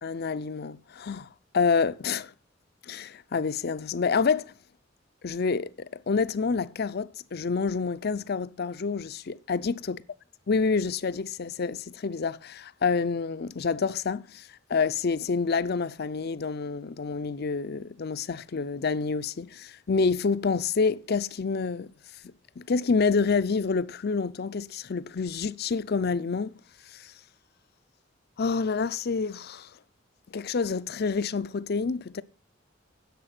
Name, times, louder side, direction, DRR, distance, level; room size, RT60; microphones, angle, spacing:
voice 1, 0.0-1.3 1.5-2.3 2.9-4.5 5.2-10.0 10.5-21.9 22.6-26.5 26.9-27.1 28.4-29.7 30.3-32.2, left 5 dB, 55° left, 0.5 m, -28 dB
10.5 x 7.9 x 5.9 m
head